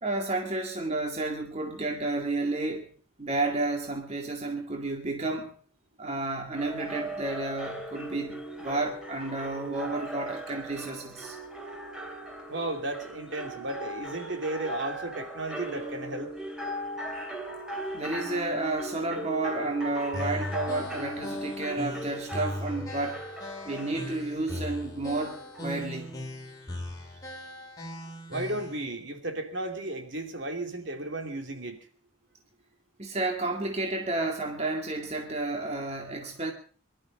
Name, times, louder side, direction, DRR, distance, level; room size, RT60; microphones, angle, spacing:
voice 1, 0.0-2.9 3.2-5.5 6.0-11.4 17.9-23.2 23.6-26.2 33.0-36.5, right 2 dB, 30° right, 2.2 m, -31 dB
sound 1, 6.6-26.1, right 1 dB, 5° right, 2.9 m, -39 dB
voice 2, 12.5-16.3 28.3-31.9, right 2 dB, 60° right, 2.7 m, -34 dB
sound 2, 20.1-28.8, left 1 dB, 20° left, 3.2 m, -38 dB
23.0 x 12.5 x 5.2 m
head